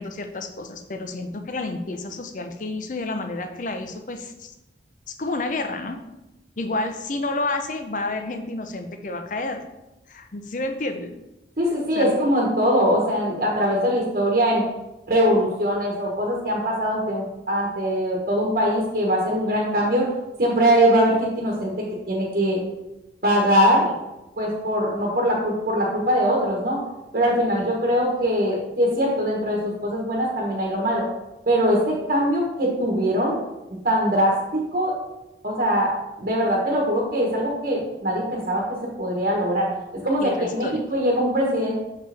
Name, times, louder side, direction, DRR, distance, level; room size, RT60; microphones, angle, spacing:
voice 1, 0.0-4.5 5.1-6.0 6.6-9.6 10.1-11.1 11.9-12.2 23.8-23.9 27.6-27.7 40.2-40.8, left 2 dB, 45° left, 7 dB, 0.6 m, -30 dB
voice 2, 11.6-14.6 15.1-20.1 20.4-21.7 22.1-22.6 23.2-23.9 24.4-26.8 27.1-31.0 31.5-33.4 33.8-34.9 35.4-35.9 36.2-38.6 39.0-39.7 39.9-41.8, equal, 55° right, -3 dB, 1.2 m, -22 dB
6.7 x 4.9 x 3.4 m, 0.97 s
head